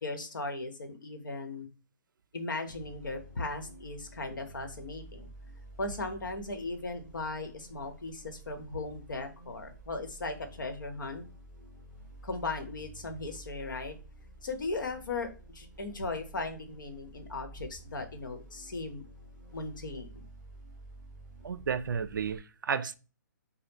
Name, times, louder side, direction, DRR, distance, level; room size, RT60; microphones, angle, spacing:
voice 1, 0.0-1.7 2.3-5.3 5.8-11.3 12.2-14.0 14.4-19.0 19.5-20.2, left 3 dB, 90° left, 1.0 m, -37 dB
sound 1, 2.7-22.4, right 1 dB, 5° left, 1.2 m, -51 dB
voice 2, 21.4-22.9, right 6 dB, 90° right, 0.4 m, -32 dB
5.2 x 2.2 x 2.9 m
hypercardioid pair, 175°, 10 cm